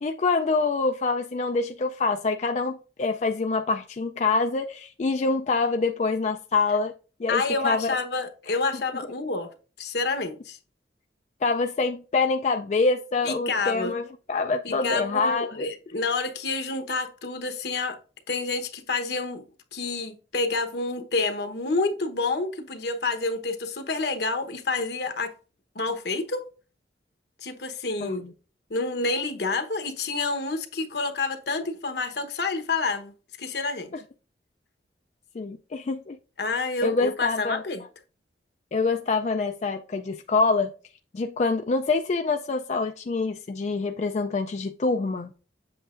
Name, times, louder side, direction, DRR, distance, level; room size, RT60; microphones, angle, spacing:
voice 1, 0.0-6.9 7.2-7.9 8.5-8.6 11.4-15.7 28.0-28.3 35.3-36.2 36.8-37.6 38.7-40.7 41.1-45.3, left 3 dB, 40° left, 0.3 m, -26 dB
voice 2, 7.3-9.5 9.8-10.6 13.2-13.9 14.6-18.0 18.3-19.4 19.7-25.3 25.7-26.4 27.4-28.2 28.7-33.1 33.4-33.9 36.4-37.8, left 3 dB, 65° left, 1.0 m, -28 dB
7.8 x 6.9 x 2.5 m
head